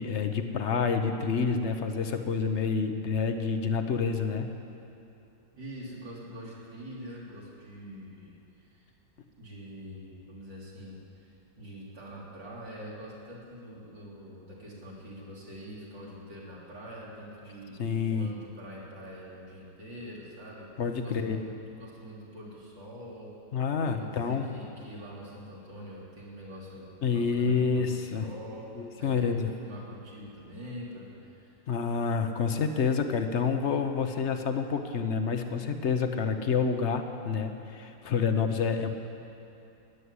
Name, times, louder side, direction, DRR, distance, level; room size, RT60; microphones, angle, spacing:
voice 1, 0.0-4.5 17.8-18.3 20.8-21.4 23.5-24.5 27.0-28.3 28.7-29.5 31.7-38.9, left 5 dB, 50° left, 7 dB, 0.9 m, -28 dB
voice 2, 5.5-8.9 9.4-11.3 11.6-20.7 21.0-23.3 23.8-31.6, equal, 80° right, -5 dB, 3.9 m, -44 dB
13.5 x 9.9 x 9.7 m, 2.8 s
omnidirectional pair, 2.0 m